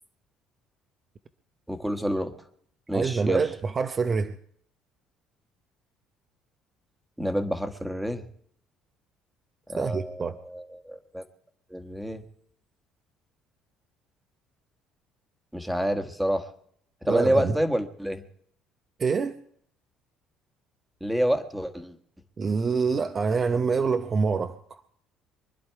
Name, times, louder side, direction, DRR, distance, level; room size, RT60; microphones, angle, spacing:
voice 1, 1.7-2.3 2.9-3.4 7.2-8.2 9.7-11.2 11.7-12.2 15.5-16.5 17.0-18.2 21.0-21.9, equal, 5° right, 1.5 m, -28 dB
voice 2, 2.9-4.4 9.8-10.4 17.1-17.6 19.0-19.4 22.4-24.6, right 5 dB, 30° right, 0.8 m, -25 dB
24.5 x 11.0 x 4.7 m
cardioid pair, 130°, 0 cm